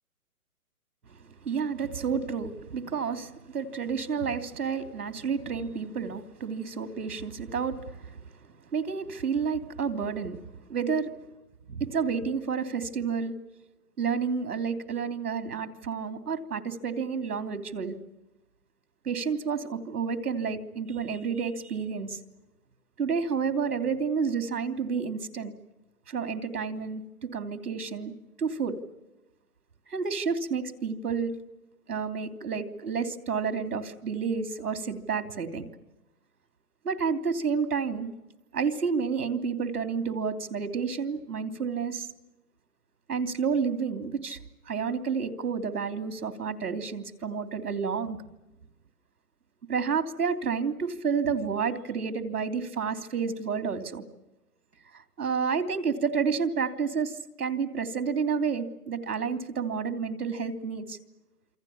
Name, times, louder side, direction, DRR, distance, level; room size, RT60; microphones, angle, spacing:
voice 1, 1.4-8.3 8.7-10.4 10.7-11.2 11.7-13.4 14.0-17.9 19.0-22.2 23.0-25.5 26.1-27.0 27.3-28.1 28.4-28.8 29.9-31.3 31.9-35.7 36.8-38.1 38.5-42.1 43.1-44.4 44.7-48.2 49.7-54.0 55.2-61.0, right 6 dB, 85° right, 9 dB, 3.2 m, -30 dB
27.5 x 25.5 x 7.2 m, 0.96 s
hypercardioid pair, 160°, 45 cm